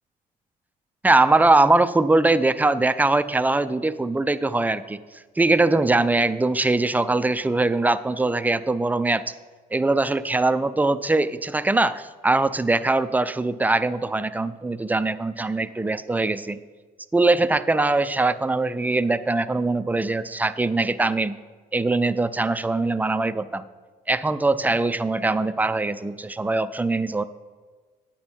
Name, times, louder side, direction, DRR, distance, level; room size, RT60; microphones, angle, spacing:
voice 1, 1.0-5.0 5.4-9.2 9.7-16.6 17.1-21.4 21.7-23.6 24.1-27.2, right 2 dB, 10° right, 12 dB, 0.4 m, -22 dB
9.5 x 8.6 x 4.5 m, 1.4 s
cardioid pair, 110°, 17 cm